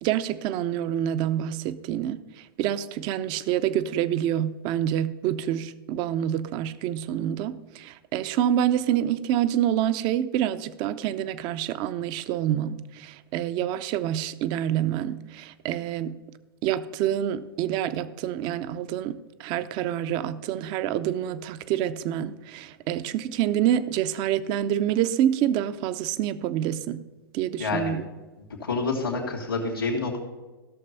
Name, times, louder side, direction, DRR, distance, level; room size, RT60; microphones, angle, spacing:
voice 1, 0.0-16.2 16.6-27.0 27.3-28.1, right 11 dB, 35° right, 0.7 m, -27 dB
voice 2, 27.6-28.0 28.6-30.2, left 3 dB, 80° left, 2.7 m, -28 dB
15.5 x 6.7 x 5.5 m
figure-of-eight pair, 105°, 12 cm